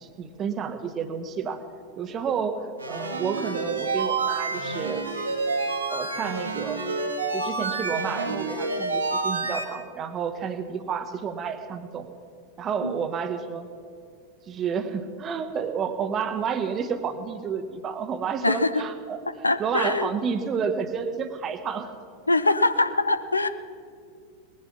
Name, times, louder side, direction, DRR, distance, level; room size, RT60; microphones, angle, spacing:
voice 1, 0.0-1.6 2.0-5.0 5.9-6.9 7.3-12.1 12.6-13.7 14.5-19.2 19.6-21.9, right 6 dB, 30° right, 9 dB, 1.1 m, -30 dB
sound 1, 2.8-9.6, right 3 dB, 75° right, 1.8 m, -28 dB
voice 2, 18.4-18.8 19.4-20.1 22.3-23.5, left 2 dB, 80° left, 12 dB, 0.6 m, -23 dB
19.0 x 11.0 x 5.9 m, 2.3 s
figure-of-eight pair, 90°, 0 cm